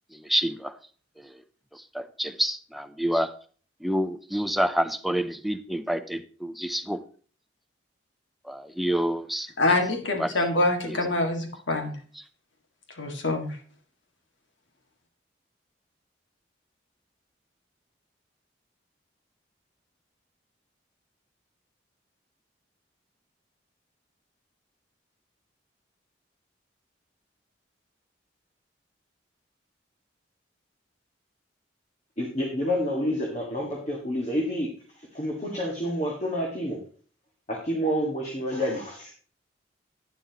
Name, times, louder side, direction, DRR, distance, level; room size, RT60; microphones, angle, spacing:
voice 1, 0.1-0.8 1.2-1.3 1.7-3.3 3.8-7.0 8.4-9.8 10.2-10.5 10.9-11.0 12.2-12.3, equal, ahead, 9 dB, 0.5 m, -28 dB
voice 2, 9.6-11.9 13.0-13.6, left 2 dB, 90° left, 3 dB, 1.9 m, -25 dB
voice 3, 32.2-34.7 35.1-36.8 37.5-39.1, equal, 35° left, -1 dB, 1.7 m, -28 dB
11.0 x 9.4 x 2.9 m, 0.43 s
head